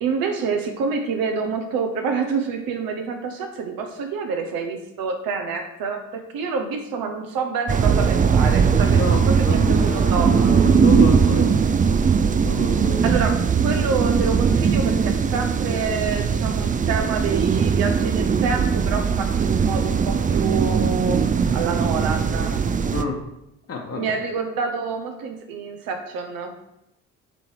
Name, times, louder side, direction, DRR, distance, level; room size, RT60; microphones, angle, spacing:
voice 1, 0.0-10.3 13.0-21.2 21.5-22.6 23.9-26.5, right 5 dB, 70° right, 4 dB, 1.1 m, -27 dB
sound 1, 7.7-23.0, right 6 dB, 25° right, 0.4 m, -19 dB
voice 2, 8.9-12.0 12.4-13.1 22.9-23.3 23.7-24.2, left 4 dB, 40° left, 0 dB, 1.3 m, -29 dB
7.4 x 3.3 x 4.6 m, 0.85 s
hypercardioid pair, 55°, 36 cm